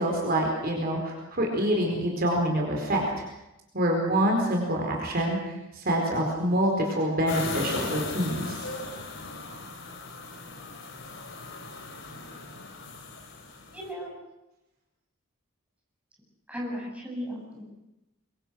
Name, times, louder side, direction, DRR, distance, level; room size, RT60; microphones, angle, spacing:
voice 1, 0.0-3.0 3.7-8.7, equal, 45° right, 1 dB, 4.6 m, -26 dB
sound 1, 7.3-13.9, left 3 dB, 60° left, 4.1 m, -38 dB
voice 2, 13.7-14.2 16.5-17.6, equal, 5° right, -3 dB, 7.6 m, -36 dB
25.5 x 23.5 x 6.5 m, 0.93 s
head